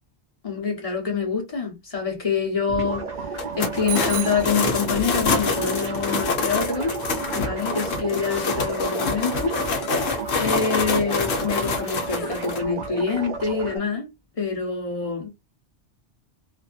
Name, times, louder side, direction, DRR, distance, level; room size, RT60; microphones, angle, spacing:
voice 1, 0.4-7.0 7.3-9.6 10.4-14.1 14.4-15.3, left 5 dB, 35° left, 1.0 m, -26 dB
sound 1, 2.7-13.8, right 5 dB, 45° right, 0.7 m, -32 dB
sound 2, 3.3-12.6, left 4 dB, 70° left, 1.0 m, -26 dB
Bicycle bell, 3.9-5.4, right 12 dB, 75° right, 0.9 m, -34 dB
2.6 x 2.5 x 2.4 m
omnidirectional pair, 1.2 m